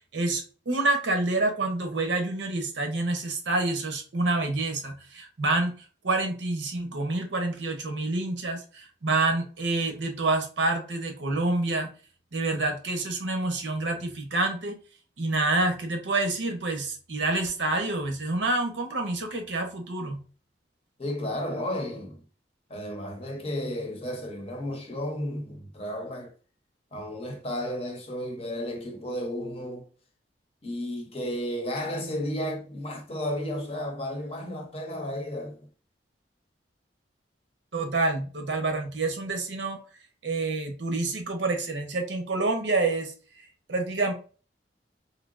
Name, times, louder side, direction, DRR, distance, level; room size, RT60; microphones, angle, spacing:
voice 1, 0.1-5.7 6.0-11.9 12.3-14.8 15.2-20.2 37.7-39.8 40.2-43.1 43.7-44.1, right 2 dB, 80° right, 0.8 m, -27 dB
voice 2, 21.0-22.2 22.7-26.3 26.9-29.9 30.6-35.7, left 1 dB, 35° left, 0.7 m, -33 dB
3.3 x 2.8 x 2.5 m
head